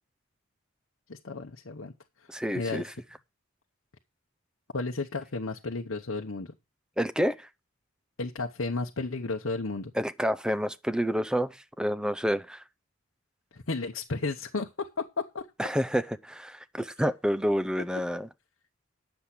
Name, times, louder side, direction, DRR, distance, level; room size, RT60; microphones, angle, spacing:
voice 1, 1.1-1.9 2.2-2.3 2.5-2.9 4.7-6.5 8.2-9.9 13.5-15.5, left 3 dB, 70° left, 0.9 m, -33 dB
voice 2, 2.3-2.8 7.0-7.5 10.0-12.6 15.6-18.3, equal, 5° right, 0.5 m, -29 dB
10.0 x 7.1 x 6.0 m
head